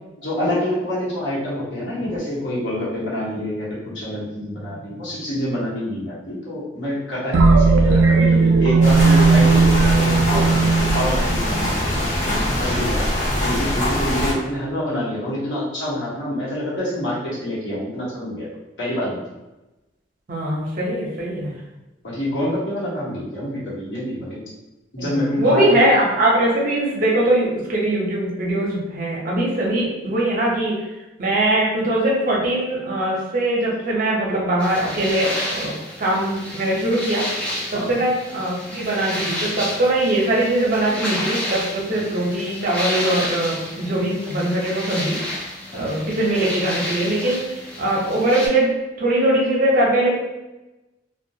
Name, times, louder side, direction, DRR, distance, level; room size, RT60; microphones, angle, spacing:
voice 1, 0.2-18.5 18.8-19.2 22.0-24.4 24.9-25.6 37.7-38.0 41.9-42.0 43.8-44.0 45.7-46.0, equal, 65° left, -7 dB, 1.0 m, -27 dB
sound 1, 7.3-12.0, right 4 dB, 85° right, 0.3 m, -16 dB
sound 2, 8.8-14.3, left 1 dB, 40° left, 0.7 m, -22 dB
voice 2, 20.3-21.5 25.0-30.8 31.2-37.2 37.7-45.2 45.7-47.5 47.8-50.1, right 1 dB, 45° right, -4 dB, 0.6 m, -21 dB
sound 3, 34.6-48.5, left 1 dB, 5° left, 0.3 m, -30 dB
2.3 x 2.1 x 2.7 m, 1.0 s
head